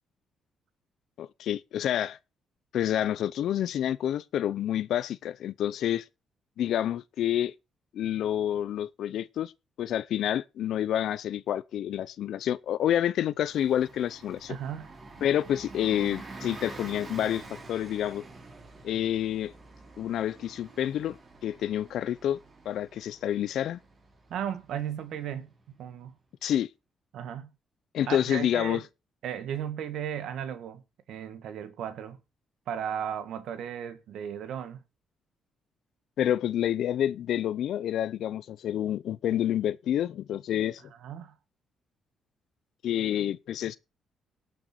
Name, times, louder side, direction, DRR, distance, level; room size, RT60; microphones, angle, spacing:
voice 1, 1.2-2.2 2.7-6.1 6.6-7.5 7.9-9.5 9.8-14.6 15.2-18.2 18.8-19.5 20.0-21.2 21.4-22.4 22.7-23.8 26.4-26.7 27.9-28.8 36.2-40.8 42.8-43.8, left 11 dB, 75° left, 0.5 m, -28 dB
Bus, 13.4-25.7, right 3 dB, 35° right, 4.1 m, -47 dB
voice 2, 14.5-14.9 24.3-25.5 25.8-26.1 27.1-27.5 28.1-28.8 29.2-30.8 31.1-32.2 32.7-34.8 41.0-41.3, right 9 dB, 75° right, 1.5 m, -35 dB
17.5 x 6.7 x 4.3 m
cardioid pair, 90°, 0 cm